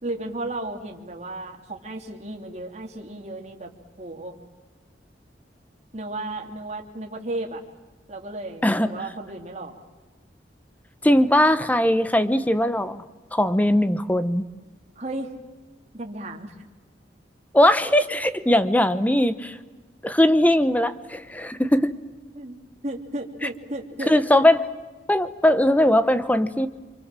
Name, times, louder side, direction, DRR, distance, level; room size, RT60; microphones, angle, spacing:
voice 1, 0.0-3.7 4.0-4.3 5.9-7.6 8.1-9.8 15.0-15.3 15.9-16.5 22.3-24.1, right 2 dB, 40° right, 2 dB, 2.8 m, -34 dB
voice 2, 11.0-13.0 13.3-14.4 17.5-19.6 20.0-22.0 24.1-24.7 25.1-26.7, left 1 dB, 10° left, 12 dB, 1.0 m, -20 dB
28.0 x 24.5 x 7.5 m, 1.3 s
head